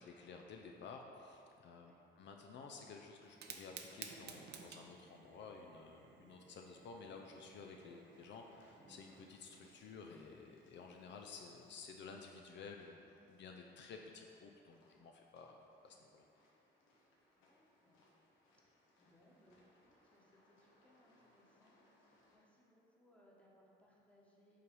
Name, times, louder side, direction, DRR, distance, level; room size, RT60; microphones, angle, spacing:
voice 1, 0.0-16.3, left 4 dB, 65° left, 2 dB, 0.5 m, -53 dB
Fire, 3.2-12.1, right 6 dB, 60° right, 0.5 m, -57 dB
sound 1, 7.9-22.4, left 1 dB, 85° left, 1.1 m, -73 dB
Drum, 8.8-10.5, right 2 dB, 25° left, 1.5 m, -68 dB
voice 2, 17.5-18.0 18.6-24.6, equal, 5° left, -5 dB, 1.1 m, -70 dB
5.6 x 3.3 x 5.3 m, 2.7 s
cardioid pair, 90°, 20 cm